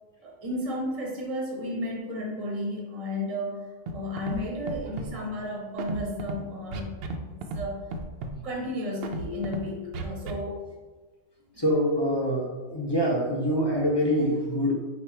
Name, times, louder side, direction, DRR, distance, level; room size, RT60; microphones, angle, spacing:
voice 1, 0.2-7.0 7.3-7.9 8.4-10.6, left 1 dB, 35° right, -1 dB, 0.8 m, -33 dB
Scratching (performance technique), 3.9-4.4 4.7-5.1 5.8-6.3 6.7-7.2 7.4-7.6 7.9-8.3 9.0-9.6 9.9-10.3, right 3 dB, 65° right, 0.7 m, -33 dB
voice 2, 11.6-14.7, equal, 25° left, -2 dB, 0.6 m, -25 dB
4.8 x 2.4 x 4.3 m, 1.3 s
omnidirectional pair, 1.2 m